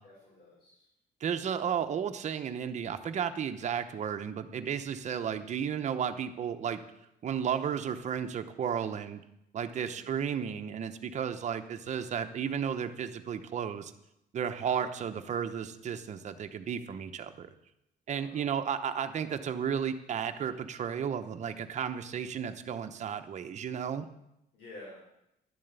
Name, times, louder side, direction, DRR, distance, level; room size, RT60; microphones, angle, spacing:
voice 1, 0.0-0.8 9.7-10.0 18.1-18.5 24.5-25.0, left 1 dB, 65° left, -5 dB, 4.3 m, -51 dB
voice 2, 1.2-6.8 7.2-9.2 9.5-13.9 14.3-17.5 18.1-24.1, right 8 dB, 40° right, 8 dB, 0.9 m, -33 dB
11.5 x 7.4 x 8.1 m, 0.84 s
cardioid pair, 150°, 17 cm